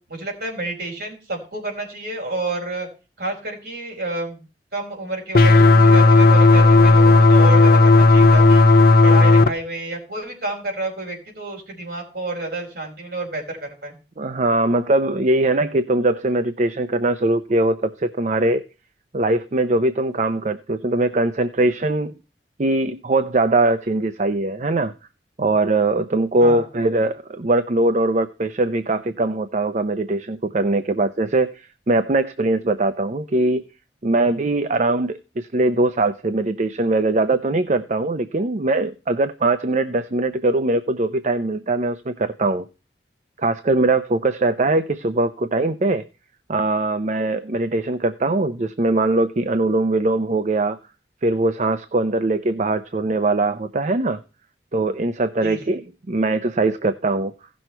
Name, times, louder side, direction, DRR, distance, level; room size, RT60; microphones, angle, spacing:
voice 1, 0.1-2.9 3.2-4.4 4.7-8.6 9.0-13.9 26.4-26.7 55.4-55.7, right 2 dB, 60° right, 4.8 m, -29 dB
sound 1, 5.3-9.5, left 2 dB, 55° left, 0.8 m, -12 dB
voice 2, 14.2-18.6 19.1-22.1 22.6-24.9 25.4-33.7 34.0-42.7 43.4-46.1 46.5-50.8 51.2-54.2 54.7-55.8 56.1-57.3, right 2 dB, 40° right, 0.6 m, -21 dB
16.0 x 6.3 x 4.5 m
head